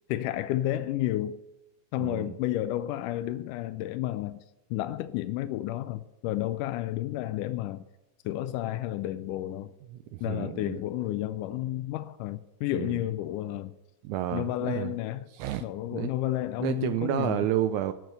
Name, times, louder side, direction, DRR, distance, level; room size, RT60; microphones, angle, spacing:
voice 1, 0.1-1.4 1.9-4.4 4.7-7.8 8.3-9.7 10.2-13.7 14.3-15.3 15.6-17.5, left 14 dB, 80° left, 2.0 m, -31 dB
voice 2, 2.0-2.3 9.9-10.8 12.7-13.0 14.0-14.9 15.3-15.6 15.9-16.1 16.6-17.9, right 12 dB, 90° right, 1.7 m, -30 dB
17.0 x 6.2 x 6.7 m
omnidirectional pair, 4.0 m